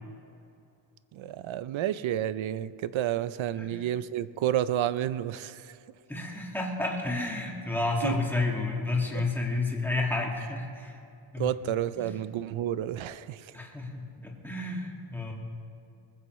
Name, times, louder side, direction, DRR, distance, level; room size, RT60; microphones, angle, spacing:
voice 1, 1.1-5.6 8.0-8.2 9.1-9.2 11.4-13.4, right 11 dB, 70° right, 15 dB, 0.6 m, -30 dB
voice 2, 6.1-11.0 11.3-11.5 12.0-12.1 13.5-15.3, left 2 dB, 5° left, -1 dB, 1.7 m, -31 dB
20.0 x 15.0 x 3.1 m, 2.6 s
wide cardioid pair, 175°, 49 cm